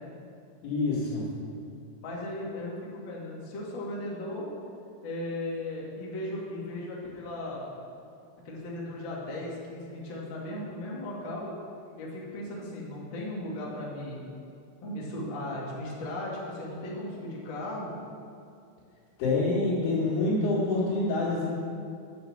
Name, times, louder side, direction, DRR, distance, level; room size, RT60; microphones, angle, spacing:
voice 1, 0.6-1.2 19.2-21.5, left 2 dB, 70° left, -10 dB, 4.6 m, -26 dB
voice 2, 2.0-4.5 5.0-7.8 8.4-11.5 12.0-14.2 14.8-17.9, left 1 dB, 55° left, -5 dB, 1.3 m, -36 dB
8.9 x 8.3 x 7.3 m, 2.4 s
omnidirectional pair, 5.9 m